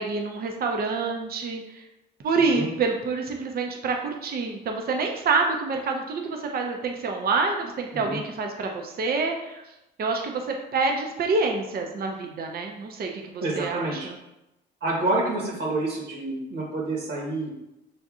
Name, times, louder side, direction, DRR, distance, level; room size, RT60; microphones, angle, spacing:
voice 1, 0.0-1.8 2.2-9.6 10.0-14.2, right 4 dB, 50° right, 2 dB, 0.6 m, -27 dB
voice 2, 2.4-2.7 7.9-8.2 13.4-14.1 14.8-17.5, right 2 dB, 70° right, -3 dB, 1.3 m, -28 dB
6.6 x 2.5 x 2.4 m, 0.92 s
cardioid pair, 90°, 20 cm